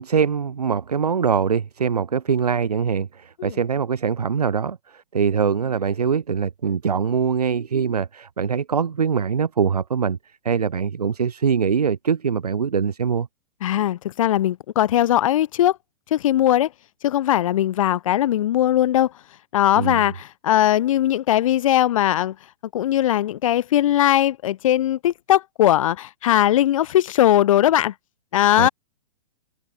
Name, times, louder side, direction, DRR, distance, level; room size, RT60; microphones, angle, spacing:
voice 1, 0.0-10.2 10.4-13.3 19.8-20.0 28.6-28.7, right 6 dB, 75° right, 3.0 m, -23 dB
voice 2, 13.6-15.8 16.1-16.7 17.0-19.1 19.5-22.3 22.7-27.9 28.3-28.7, left 12 dB, 55° left, 6.3 m, -19 dB
figure-of-eight pair, 115°, 20 cm